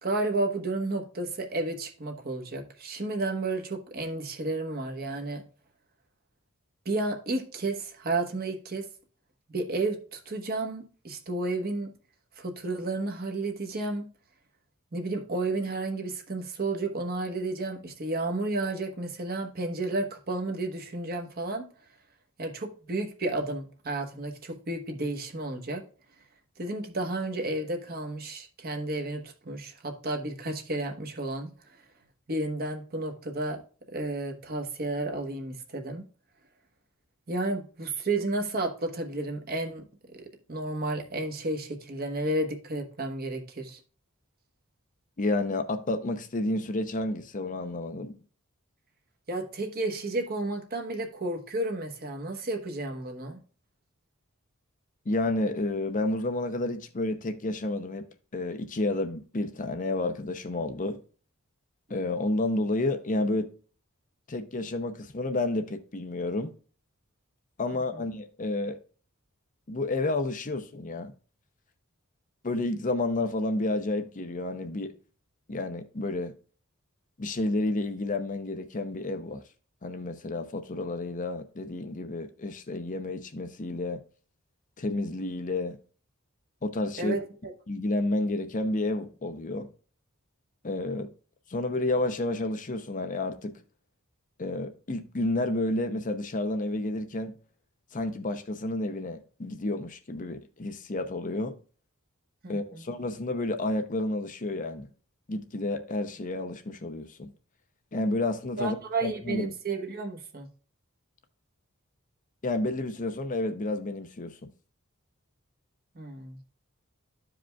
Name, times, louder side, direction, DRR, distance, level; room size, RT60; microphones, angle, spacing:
voice 1, 0.0-5.4 6.8-8.9 9.5-11.9 12.4-14.0 14.9-21.6 22.4-25.8 26.6-31.8 32.3-33.6 33.9-36.0 37.3-39.8 40.2-43.8 49.3-53.4 67.7-68.1 87.0-87.5 102.4-102.8 108.6-110.5 115.9-116.4, right 2 dB, 45° right, 1.1 m, -32 dB
voice 2, 45.2-48.2 55.1-58.1 58.3-61.0 61.9-63.5 64.3-66.5 67.6-68.8 69.7-71.1 72.4-74.9 75.5-76.3 77.2-79.4 79.8-84.0 84.8-85.8 86.6-87.2 87.7-89.7 90.6-91.1 91.5-93.6 94.4-97.3 97.9-101.5 102.5-104.9 105.3-107.3 107.9-108.8 109.0-109.5 112.4-114.5, left 2 dB, 40° left, 0.6 m, -30 dB
13.0 x 5.0 x 2.3 m
head